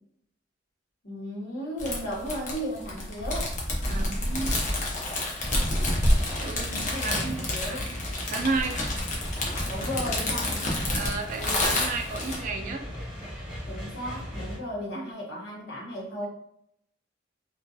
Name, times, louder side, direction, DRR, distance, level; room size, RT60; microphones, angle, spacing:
voice 1, 1.0-3.5 6.7-7.9 9.6-10.7 13.7-16.3, equal, 65° left, -3 dB, 0.9 m, -35 dB
sound 1, 1.8-12.4, left 1 dB, 40° left, 0.6 m, -28 dB
voice 2, 3.9-4.6 6.4-8.8 10.9-12.9 14.9-15.0, right 4 dB, 45° right, 4 dB, 0.4 m, -33 dB
sound 2, 5.4-14.6, equal, ahead, 1.0 m, -38 dB
2.6 x 2.2 x 2.3 m, 0.72 s
head